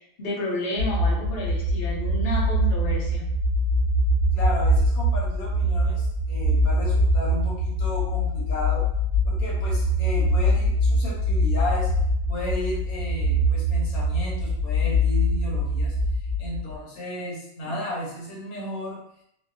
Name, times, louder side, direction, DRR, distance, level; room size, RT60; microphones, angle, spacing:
voice 1, 0.2-3.3, equal, 50° left, -4 dB, 0.8 m, -30 dB
sound 1, 0.8-16.7, equal, 60° right, 0.6 m, -23 dB
voice 2, 4.3-8.8 9.2-11.9 12.3-16.0 16.4-19.0, equal, 90° left, -3 dB, 1.3 m, -33 dB
2.7 x 2.2 x 2.3 m, 0.74 s
omnidirectional pair, 1.5 m